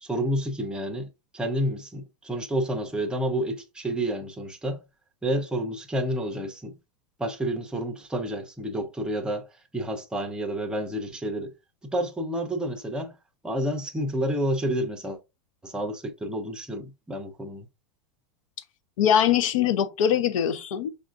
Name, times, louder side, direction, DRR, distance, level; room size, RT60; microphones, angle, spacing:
voice 1, 0.0-4.8 5.2-6.7 7.2-9.5 9.7-11.5 11.8-13.1 13.4-15.2 15.6-17.7, right 1 dB, 5° right, 0.5 m, -29 dB
voice 2, 19.0-20.9, left 9 dB, 80° left, 0.6 m, -22 dB
5.6 x 2.4 x 2.4 m
supercardioid pair, 140°, 17 cm